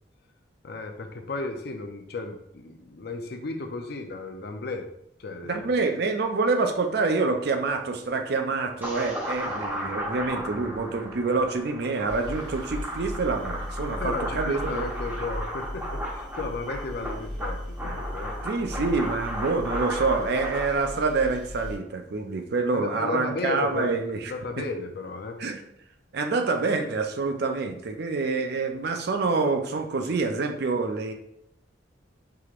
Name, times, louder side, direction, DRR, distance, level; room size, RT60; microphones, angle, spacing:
voice 1, 0.6-4.9 5.2-5.6 13.9-18.4 22.7-25.4, left 3 dB, 60° left, 5 dB, 0.5 m, -34 dB
voice 2, 5.4-14.9 18.4-24.3 25.4-25.6 26.1-31.1, right 3 dB, 60° right, 5 dB, 0.5 m, -27 dB
sound 1, 8.8-20.7, equal, 10° right, 0.9 m, -35 dB
sound 2, 12.0-21.8, left 1 dB, 85° right, 1.3 m, -37 dB
4.8 x 2.9 x 2.4 m, 0.74 s
head